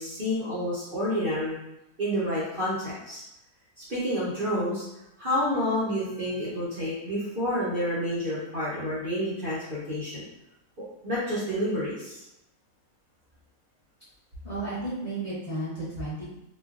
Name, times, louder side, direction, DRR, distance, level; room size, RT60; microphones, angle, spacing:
voice 1, 0.0-1.6 2.0-3.2 3.8-4.8 5.2-10.2 10.8-12.2, equal, 45° right, -10 dB, 0.8 m, -29 dB
voice 2, 14.4-16.2, right 2 dB, 30° left, -10 dB, 0.9 m, -33 dB
3.0 x 2.3 x 2.4 m, 0.88 s
omnidirectional pair, 1.6 m